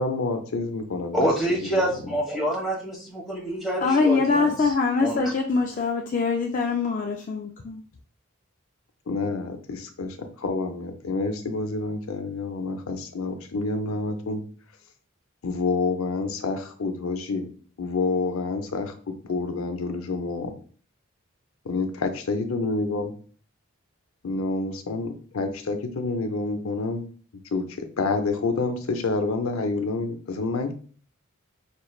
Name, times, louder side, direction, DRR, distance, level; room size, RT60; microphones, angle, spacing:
voice 1, 0.0-1.3 1.7-1.8 9.1-14.4 15.4-17.5 17.8-20.5 21.7-23.1 24.2-27.0 27.5-30.7, left 3 dB, 80° left, 6 dB, 0.6 m, -28 dB
voice 2, 1.1-4.5 5.0-5.2, right 1 dB, ahead, -4 dB, 1.5 m, -26 dB
voice 3, 3.8-7.8, left 4 dB, 40° left, 1 dB, 0.4 m, -23 dB
5.1 x 3.2 x 2.3 m, 0.42 s
head